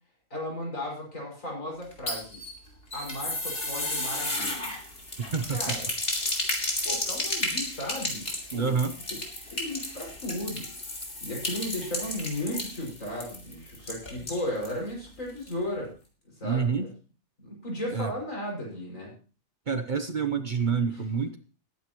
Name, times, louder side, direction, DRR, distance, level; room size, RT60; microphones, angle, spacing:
voice 1, 0.3-2.4 2.9-4.7 5.5-5.8 6.8-8.8 9.1-9.2 9.5-10.7 11.2-15.9 16.4-16.9 17.4-19.1 20.9-21.0, left 1 dB, 80° left, -2 dB, 6.2 m, -35 dB
sound 1, 1.8-14.8 15.1-15.2 15.5-15.6, left 1 dB, 45° left, 3.1 m, -33 dB
voice 2, 5.2-5.6 8.5-8.9 16.4-16.9 17.9-18.1 19.7-21.4, right 5 dB, 40° right, 9 dB, 0.9 m, -27 dB
20.0 x 9.6 x 3.0 m, 0.35 s
omnidirectional pair, 1.4 m